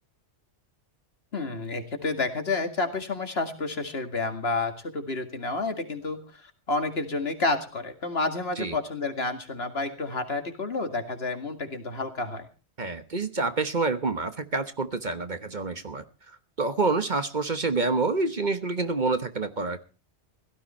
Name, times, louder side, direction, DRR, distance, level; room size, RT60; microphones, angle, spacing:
voice 1, 1.3-12.5, left 3 dB, 60° left, 6 dB, 2.4 m, -30 dB
voice 2, 12.8-16.0 16.6-19.8, right 3 dB, 45° right, 10 dB, 1.3 m, -27 dB
17.0 x 13.5 x 4.3 m, 0.36 s
omnidirectional pair, 1.2 m